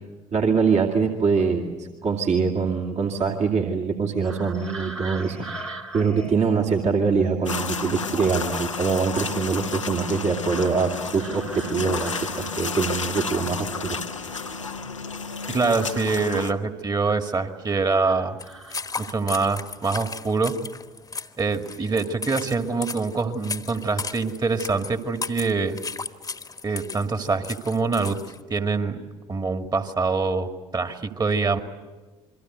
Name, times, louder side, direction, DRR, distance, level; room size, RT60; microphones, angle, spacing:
voice 1, 0.3-5.4 5.9-14.0, right 5 dB, 45° right, 0 dB, 2.6 m, -24 dB
sound 1, 4.2-14.2 14.5-16.5 17.1-19.3 20.5-20.7 21.2-21.7 21.9-22.2, right 2 dB, 80° right, 2.0 m, -43 dB
sound 2, 7.5-16.5, left 5 dB, 90° left, 0.9 m, -31 dB
voice 2, 15.5-18.4 19.0-20.5 21.4-25.8 26.6-28.2 28.5-29.0 29.3-31.6, right 4 dB, 25° right, 7 dB, 2.2 m, -25 dB
sound 3, 18.4-28.4, left 4 dB, 20° left, 1.3 m, -35 dB
28.5 x 23.5 x 8.1 m, 1.3 s
figure-of-eight pair, 50°, 16 cm